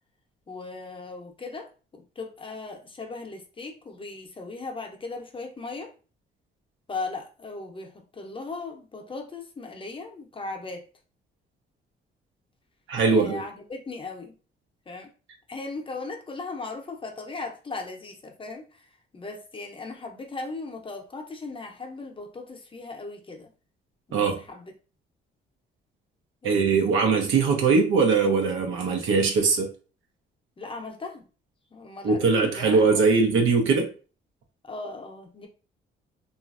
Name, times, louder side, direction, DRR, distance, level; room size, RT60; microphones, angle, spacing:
voice 1, 0.5-5.9 6.9-10.8 13.0-14.3 14.9-15.1 15.5-23.5 24.1-24.7 26.4-26.8 30.6-31.3 31.7-33.0 34.6-35.5, left 3 dB, 25° left, 0.7 m, -38 dB
voice 2, 12.9-13.4 24.1-24.3 26.4-29.7 32.0-33.9, right 4 dB, 80° right, 0.8 m, -21 dB
3.0 x 2.4 x 2.4 m
cardioid pair, 90°, 20 cm